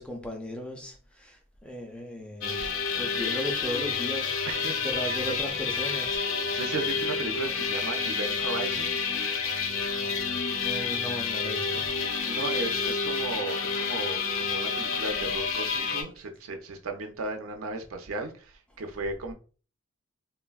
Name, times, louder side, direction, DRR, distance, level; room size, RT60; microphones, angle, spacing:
voice 1, 0.0-4.4 4.8-6.6 10.6-11.9, left 1 dB, 5° left, 0.4 m, -37 dB
sound 1, 2.4-16.0, left 5 dB, 65° left, 0.5 m, -29 dB
voice 2, 4.5-5.4 6.5-8.9 12.2-19.3, right 3 dB, 75° right, 0.5 m, -35 dB
3.3 x 2.1 x 2.3 m
head